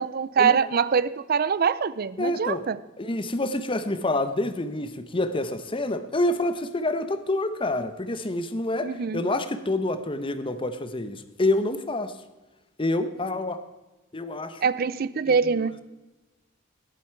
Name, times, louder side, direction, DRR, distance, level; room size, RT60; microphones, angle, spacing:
voice 1, 0.0-2.8 8.8-9.2 14.6-15.7, right 6 dB, 50° right, 0.5 m, -24 dB
voice 2, 2.2-2.7 3.0-12.2 12.8-13.6 14.1-14.6 15.3-15.8, left 2 dB, 25° left, 0.9 m, -27 dB
18.5 x 8.3 x 4.6 m
head